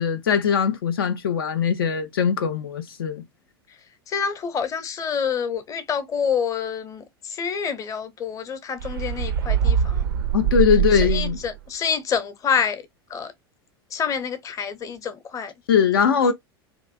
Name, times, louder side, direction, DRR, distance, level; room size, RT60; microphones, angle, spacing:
voice 1, 0.0-3.2 10.3-11.4 15.7-16.3, left 7 dB, 65° left, 0.5 m, -21 dB
voice 2, 4.1-10.0 11.1-12.8 13.1-13.3 13.9-15.5, left 6 dB, 25° left, 0.7 m, -27 dB
sound 1, 8.8-11.6, right 9 dB, 65° right, 0.4 m, -23 dB
3.0 x 2.5 x 2.4 m
figure-of-eight pair, 80°, 13 cm